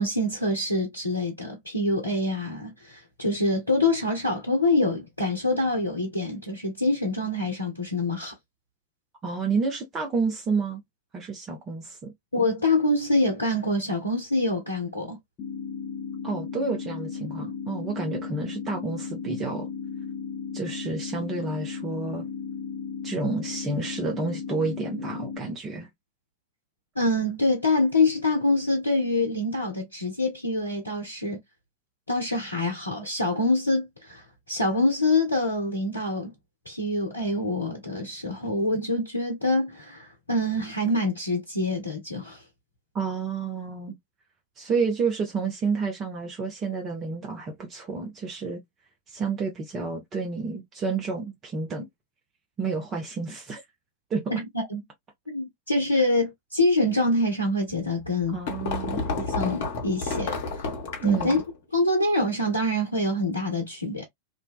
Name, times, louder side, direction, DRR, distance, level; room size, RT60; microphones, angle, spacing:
voice 1, 0.0-8.3 12.3-15.2 27.0-31.4 32.1-36.3 36.7-42.4 54.3-54.8 55.3-58.4 59.2-60.4 61.0-61.4 61.7-64.0, left 2 dB, 80° left, 0.6 m, -25 dB
voice 2, 9.2-10.8 11.1-12.1 16.2-19.7 20.5-22.3 23.0-25.9 42.9-43.9 44.6-48.6 49.1-51.9 52.6-53.6 54.1-54.2 58.3-59.0 61.0-61.4, right 4 dB, 25° right, 0.7 m, -30 dB
sound 1, 15.4-25.4, left 6 dB, 30° left, 0.7 m, -35 dB
sound 2, 57.8-61.6, left 3 dB, 55° left, 0.9 m, -31 dB
2.5 x 2.2 x 2.2 m
figure-of-eight pair, 90°, 0 cm